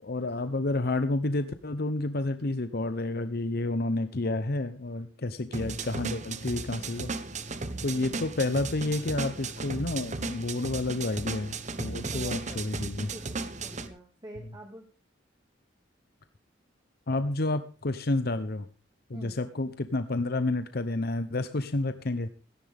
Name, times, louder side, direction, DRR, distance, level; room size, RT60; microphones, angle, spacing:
voice 1, 0.0-7.1 7.8-13.1 17.1-18.7 19.1-22.3, left 2 dB, 55° left, 11 dB, 0.8 m, -30 dB
sound 1, 5.5-13.9, right 3 dB, 40° right, 1.2 m, -35 dB
voice 2, 7.8-8.2 12.1-12.9 13.1-14.8 19.1-19.4, right 1 dB, 25° right, 0 dB, 2.2 m, -47 dB
17.5 x 14.0 x 3.5 m, 0.32 s
head